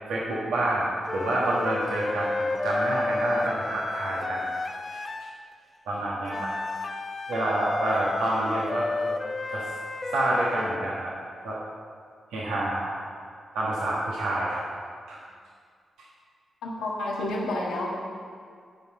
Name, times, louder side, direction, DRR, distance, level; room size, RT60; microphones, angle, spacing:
voice 1, 0.1-0.8 1.1-4.4 4.9-5.0 5.9-6.5 7.3-9.2 9.5-9.6 10.1-11.1 11.4-11.6 12.3-12.9 13.5-14.6 15.1-15.2, right 1 dB, 90° right, -6 dB, 1.4 m, -28 dB
sound 1, 1.1-5.4 6.3-10.9, left 3 dB, 45° left, 0.6 m, -32 dB
voice 2, 16.6-18.0, left 1 dB, 85° left, -3 dB, 1.6 m, -30 dB
9.4 x 5.4 x 7.6 m, 2.1 s
supercardioid pair, 45°, 0 cm